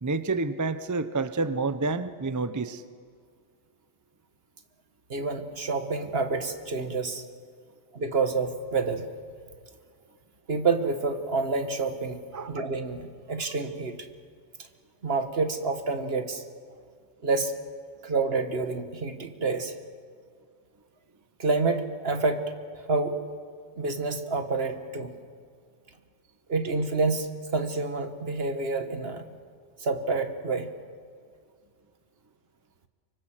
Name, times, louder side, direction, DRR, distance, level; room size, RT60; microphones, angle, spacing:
voice 1, 0.0-2.8 12.3-12.5, right 3 dB, 20° right, 12 dB, 0.5 m, -29 dB
voice 2, 5.1-7.2 7.9-9.1 10.5-12.2 12.5-14.0 15.0-16.4 17.2-17.5 18.0-19.7 21.4-22.4 22.9-23.2 23.8-25.1 26.5-29.2 29.8-30.7, right 3 dB, 50° right, 7 dB, 1.8 m, -28 dB
24.5 x 24.0 x 7.6 m, 2.1 s
omnidirectional pair, 1.3 m